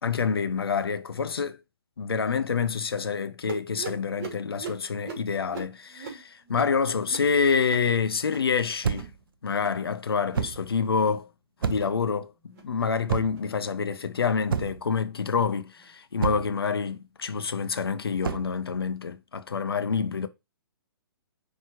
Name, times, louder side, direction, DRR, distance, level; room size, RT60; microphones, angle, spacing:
voice 1, 0.0-1.6 2.0-9.1 9.4-11.3 11.6-20.3, left 5 dB, 70° left, 0.9 m, -27 dB
sound 1, 3.5-8.5 8.8-9.2 9.5-9.9 10.2-10.5 10.9-11.3 11.7-12.0 12.4-12.7 13.2-13.5 14.1-14.3 14.9-15.1 15.8-15.9 16.7-16.8, right 5 dB, 40° right, 3.2 m, -42 dB
sound 2, 8.8-9.2 10.3-10.7 11.6-12.0 13.1-13.5 14.5-14.9 16.2-16.6 18.2-18.5, right 7 dB, 60° right, 0.7 m, -29 dB
9.6 x 3.3 x 4.6 m
figure-of-eight pair, 120°, 13 cm